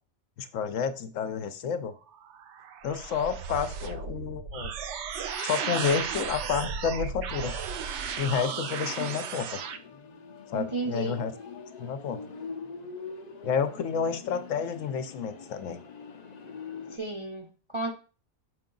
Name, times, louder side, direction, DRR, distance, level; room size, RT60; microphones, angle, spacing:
voice 1, 0.4-1.9 2.8-4.7 5.4-7.6 8.2-9.6 10.5-11.3 11.8-12.2 13.4-15.8, left 6 dB, 70° left, 1.0 m, -30 dB
sound 1, 2.1-9.8, right 6 dB, 65° right, 0.9 m, -35 dB
sound 2, 5.6-6.9 7.2-7.3 8.0-17.0, left 5 dB, 50° left, 0.5 m, -45 dB
voice 2, 10.5-11.2 16.9-17.9, right 3 dB, 35° right, 0.5 m, -34 dB
6.4 x 4.6 x 3.8 m
omnidirectional pair, 1.5 m